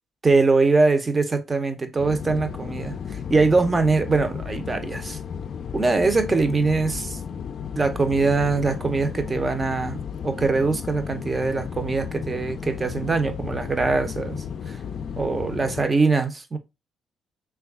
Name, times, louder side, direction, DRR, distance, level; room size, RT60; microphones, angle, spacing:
voice 1, 0.2-5.2 5.7-7.2 7.7-14.8 15.2-16.6, right 3 dB, 25° right, 0.6 m, -22 dB
sound 1, 2.0-15.9, left 7 dB, 60° left, 0.3 m, -34 dB
3.1 x 2.3 x 3.5 m
cardioid pair, 90°, 0 cm